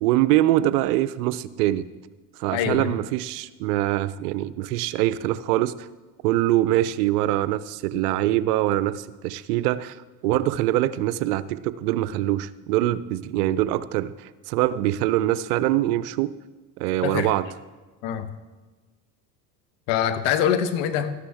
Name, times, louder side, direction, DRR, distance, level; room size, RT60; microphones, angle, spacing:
voice 1, 0.0-1.9 2.4-5.9 6.2-9.9 10.2-16.3 16.8-17.5, right 14 dB, 75° right, 16 dB, 0.6 m, -23 dB
voice 2, 2.5-2.9 17.0-17.3 18.0-18.3 19.9-21.1, left 9 dB, 65° left, 10 dB, 1.1 m, -24 dB
13.0 x 9.6 x 3.5 m, 1.3 s
hypercardioid pair, 80°, 47 cm